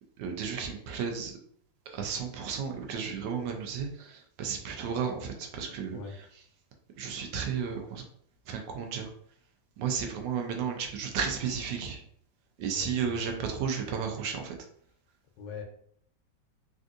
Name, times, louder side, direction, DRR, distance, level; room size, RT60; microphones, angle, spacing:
voice 1, 0.2-1.3 1.9-6.3 7.0-8.0 8.5-9.1 9.8-12.0 12.6-14.6, right 6 dB, 90° right, 3 dB, 1.3 m, -33 dB
voice 2, 12.7-13.1 15.4-15.6, left 5 dB, 90° left, 3 dB, 1.3 m, -41 dB
3.4 x 2.6 x 2.4 m, 0.64 s
omnidirectional pair, 1.9 m